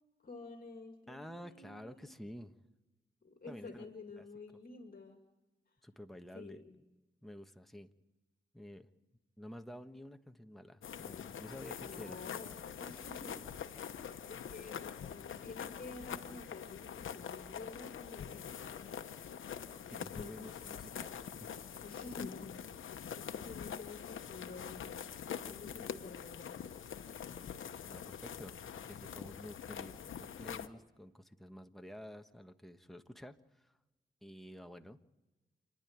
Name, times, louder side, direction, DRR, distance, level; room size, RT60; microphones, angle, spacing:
voice 1, 0.2-2.1 3.2-5.2 5.7-5.8 6.3-6.8 11.8-13.4 13.7-19.1 20.2-20.5 21.8-24.9 25.3-26.7, left 3 dB, 45° left, 4 dB, 2.2 m, -50 dB
voice 2, 1.1-2.6 3.5-3.8 4.2-4.3 5.8-6.6 7.2-7.9 8.5-8.9 9.4-12.2 19.9-21.5 27.9-33.8 34.2-35.0, equal, ahead, 6 dB, 1.3 m, -50 dB
sound 1, 10.8-30.7, left 8 dB, 90° left, 0.9 m, -45 dB
28.5 x 10.5 x 9.4 m, 1.1 s
cardioid pair, 65°, 20 cm